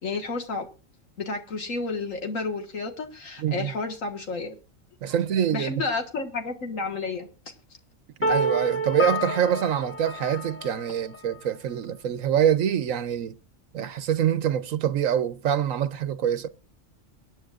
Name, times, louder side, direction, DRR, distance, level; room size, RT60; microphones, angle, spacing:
voice 1, 0.0-0.7 1.2-4.5 5.5-7.3, left 3 dB, 85° left, 2.0 m, -31 dB
voice 2, 3.4-3.7 5.0-5.7 8.2-13.3 13.7-16.5, right 9 dB, 85° right, 1.2 m, -25 dB
sound 1, 8.2-11.2, right 1 dB, 15° left, 0.6 m, -28 dB
23.5 x 9.6 x 2.5 m
omnidirectional pair, 1.3 m